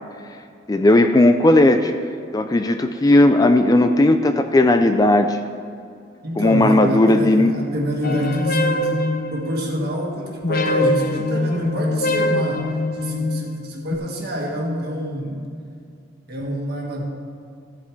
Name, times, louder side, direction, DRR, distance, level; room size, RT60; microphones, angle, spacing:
voice 1, 0.7-1.9 2.3-5.4 6.4-7.5, left 1 dB, 20° left, 7 dB, 0.3 m, -15 dB
voice 2, 6.2-9.1 9.3-15.5 16.3-17.0, equal, 55° right, -1 dB, 1.8 m, -27 dB
sound 1, 8.0-10.0 10.4-14.0, left 1 dB, 50° left, 0.6 m, -23 dB
14.5 x 8.4 x 3.3 m, 2.3 s
head